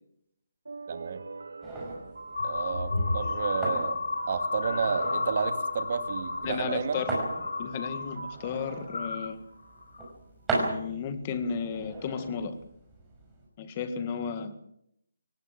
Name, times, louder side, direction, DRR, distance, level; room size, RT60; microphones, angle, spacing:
sound 1, 0.7-9.9, right 4 dB, 85° right, 2.1 m, -44 dB
voice 1, 0.9-1.2 2.4-4.0 4.3-7.0, right 6 dB, 35° right, 9 dB, 2.3 m, -31 dB
sound 2, 1.6-13.5, right 2 dB, 5° right, 5.5 m, -38 dB
sound 3, 2.3-8.1 8.4-9.3 9.8-10.1, left 3 dB, 75° left, 2.3 m, -32 dB
voice 2, 6.4-7.1 7.6-9.4 10.6-12.6 13.6-14.5, left 6 dB, 20° left, 10 dB, 1.8 m, -34 dB
23.0 x 19.5 x 7.5 m, 0.74 s
hypercardioid pair, 175°, 0 cm